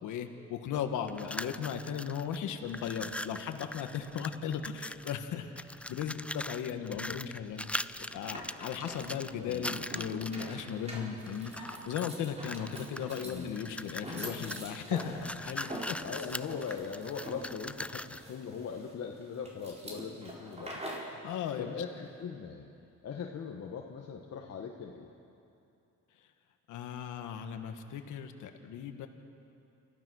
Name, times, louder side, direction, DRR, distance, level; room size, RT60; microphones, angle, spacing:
voice 1, 0.0-5.5 5.9-16.0 16.2-16.3 21.2-21.7 26.7-29.1, left 8 dB, 85° left, 6 dB, 1.5 m, -37 dB
sound 1, 1.1-2.4 2.7-5.2 5.6-10.7 11.3-12.1 12.4-18.3, left 1 dB, 5° left, 0.4 m, -41 dB
sound 2, 7.9-21.2, equal, 20° right, 4.5 m, -45 dB
voice 2, 16.0-20.8 21.6-22.7 23.0-25.1, left 6 dB, 55° left, 1 dB, 1.5 m, -40 dB
28.5 x 14.5 x 6.4 m, 2.6 s
cardioid pair, 90°, 30 cm